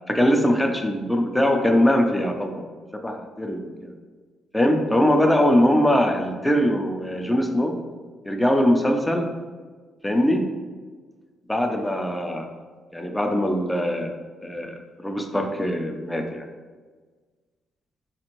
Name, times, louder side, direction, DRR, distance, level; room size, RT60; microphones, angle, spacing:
voice 1, 0.1-2.6 3.0-3.9 4.5-7.8 8.3-9.3 10.0-10.5 11.5-12.5 12.9-14.1 14.4-16.5, equal, 10° left, 4 dB, 0.5 m, -22 dB
4.1 x 2.5 x 3.0 m, 1.4 s
cardioid pair, 90°, 0 cm